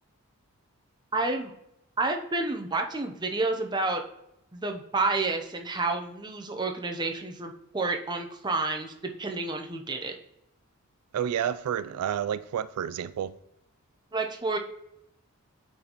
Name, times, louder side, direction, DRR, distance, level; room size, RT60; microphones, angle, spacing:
voice 1, 1.1-1.5 2.0-4.0 4.5-10.1 14.1-14.6, right 3 dB, 20° right, 0.7 m, -29 dB
voice 2, 11.1-13.3, right 9 dB, 90° right, 0.3 m, -30 dB
8.3 x 4.1 x 3.0 m
head